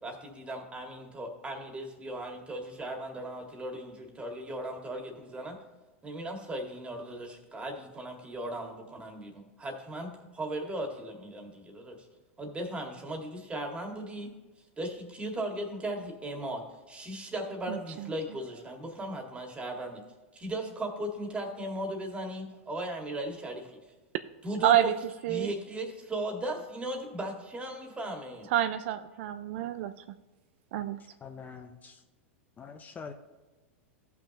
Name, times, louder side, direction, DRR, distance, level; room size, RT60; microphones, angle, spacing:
voice 1, 0.0-5.6 6.0-12.1 12.4-14.3 14.8-16.6 16.9-20.0 20.3-23.8 24.4-24.9 25.3-28.5, right 1 dB, 15° right, 3 dB, 2.0 m, -37 dB
voice 2, 17.7-18.1 24.6-24.9 25.2-25.5 28.5-29.9 30.7-31.0, right 12 dB, 60° right, 11 dB, 0.4 m, -27 dB
voice 3, 31.0-32.0 32.6-33.1, left 5 dB, 20° left, 6 dB, 0.7 m, -45 dB
15.5 x 5.9 x 2.9 m, 1.2 s
hypercardioid pair, 105°, 7 cm